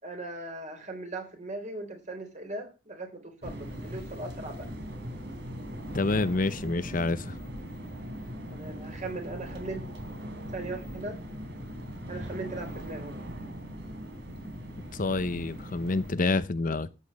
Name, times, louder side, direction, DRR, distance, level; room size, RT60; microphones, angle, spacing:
voice 1, 0.0-4.7 8.5-9.9 10.5-11.2 12.1-13.2, right 2 dB, 40° right, 4.0 m, -39 dB
sound 1, 3.4-16.1, equal, 65° right, 3.6 m, -40 dB
voice 2, 5.9-7.4 14.9-17.0, left 3 dB, 45° left, 0.8 m, -28 dB
13.5 x 8.5 x 5.5 m
head